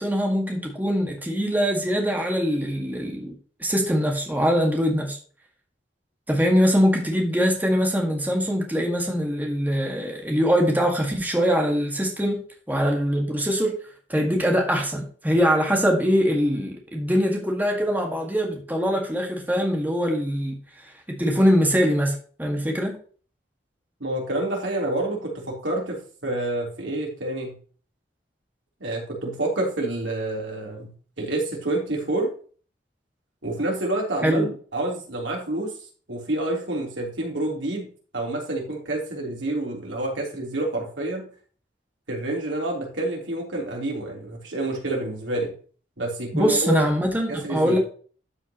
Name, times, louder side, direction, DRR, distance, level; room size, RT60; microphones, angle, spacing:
voice 1, 0.0-3.3 3.6-5.2 6.3-13.8 14.1-23.0 34.2-34.5 46.3-47.8, equal, 10° right, 1.8 m, -23 dB
voice 2, 24.0-27.6 28.8-32.3 33.4-35.7 36.1-37.9 38.1-41.3 42.1-45.5 46.0-46.9 47.3-47.8, right 2 dB, 85° right, 3.6 m, -28 dB
12.5 x 6.1 x 3.0 m
head